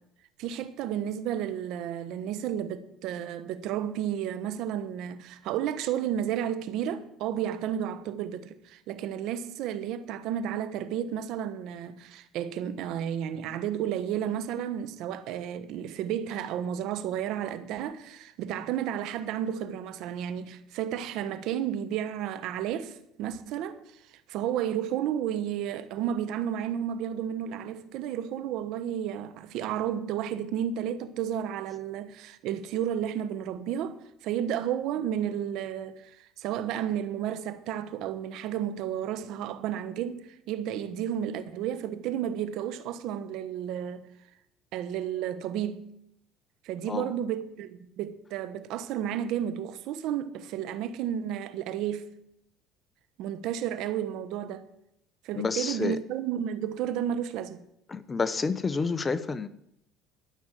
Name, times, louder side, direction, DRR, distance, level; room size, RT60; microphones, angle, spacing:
voice 1, 0.4-23.8 24.3-34.0 34.2-44.1 44.7-45.9 46.6-52.1 53.2-54.7 55.2-57.7, right 10 dB, 70° right, 1.2 m, -32 dB
voice 2, 55.3-56.0 57.9-59.5, left 4 dB, 25° left, 0.8 m, -29 dB
12.5 x 6.2 x 9.1 m
supercardioid pair, 95°, 0 cm